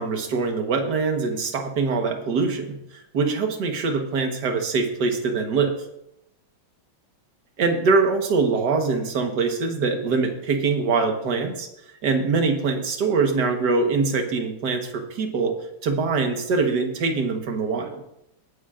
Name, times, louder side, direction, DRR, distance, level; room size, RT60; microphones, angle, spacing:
voice 1, 0.0-5.7 7.6-11.7 12.0-15.5 15.8-18.0, right 4 dB, 55° right, 4 dB, 1.8 m, -23 dB
19.0 x 9.6 x 2.5 m, 0.81 s
omnidirectional pair, 2.2 m